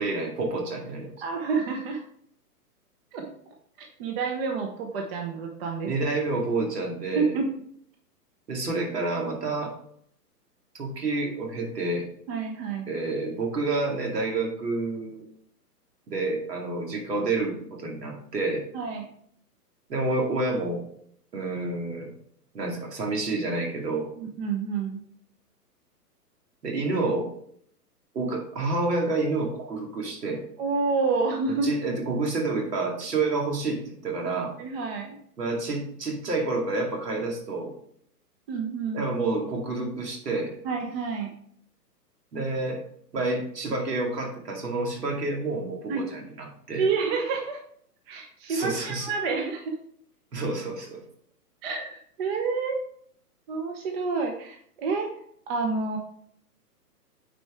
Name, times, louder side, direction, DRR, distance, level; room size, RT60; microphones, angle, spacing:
voice 1, 0.0-1.1 5.8-7.3 8.5-9.7 10.7-12.1 12.9-15.2 16.1-18.6 19.9-20.8 21.3-22.1 22.5-24.1 26.6-27.3 28.1-30.4 31.6-34.5 35.4-37.7 38.9-40.5 42.3-42.8 43.1-46.8 48.5-49.1 50.3-51.0, right 3 dB, 75° right, 1 dB, 2.5 m, -29 dB
voice 2, 1.2-2.0 3.1-3.3 3.8-5.9 7.1-7.5 12.3-12.9 18.7-19.1 24.2-25.0 30.6-31.7 34.6-35.2 38.5-39.1 40.6-41.3 45.9-46.2 46.8-47.6 48.1-49.7 51.6-52.8 53.5-55.1 55.5-56.0, right 4 dB, 40° right, 3 dB, 1.0 m, -29 dB
9.0 x 4.5 x 3.5 m, 0.65 s
hypercardioid pair, 130°, 48 cm